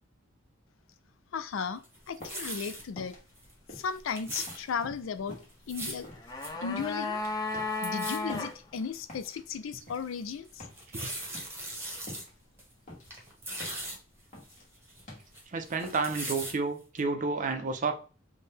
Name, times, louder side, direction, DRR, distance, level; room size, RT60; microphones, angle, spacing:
voice 1, 1.3-3.2 3.7-5.4 5.7-6.1 6.6-7.2 7.8-10.6, left 6 dB, 75° left, 0.4 m, -35 dB
sound 1, 1.8-2.8 3.4-3.5 3.8-4.6 5.5-6.0 6.4-6.5 6.8-6.9 7.2-7.5 7.8-8.2 8.7-8.8 9.4-9.5 10.6-12.2 12.6-12.7 13.0-14.0 14.4-15.4 15.7-16.5 17.0-17.1, right 1 dB, 15° right, 1.1 m, -39 dB
sound 2, 2.0-16.4, left 1 dB, 40° left, 1.3 m, -50 dB
sound 3, 5.9-8.5 8.8-8.9, left 3 dB, 20° left, 0.5 m, -34 dB
voice 2, 15.5-17.9, right 4 dB, 40° right, 0.5 m, -30 dB
4.4 x 2.2 x 3.3 m
head